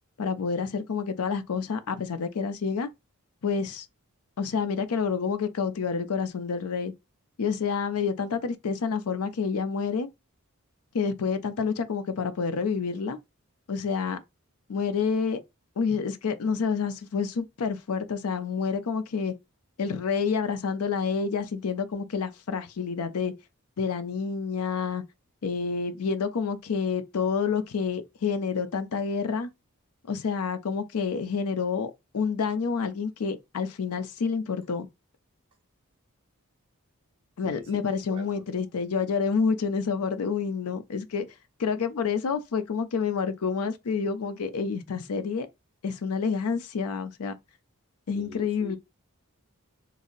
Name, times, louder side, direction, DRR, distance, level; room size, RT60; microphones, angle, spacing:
voice 1, 0.2-2.9 3.4-3.9 4.4-6.9 7.4-10.1 10.9-13.2 13.7-14.2 14.7-15.4 15.8-19.3 19.8-23.3 23.8-25.0 25.4-29.5 30.1-34.9 37.4-41.3 41.6-45.5 45.8-47.3 48.1-48.8, left 5 dB, 85° left, 0.5 m, -28 dB
voice 2, 37.4-37.8 38.1-38.2 48.1-48.8, left 1 dB, 25° right, 0.9 m, -43 dB
3.8 x 2.0 x 2.5 m
head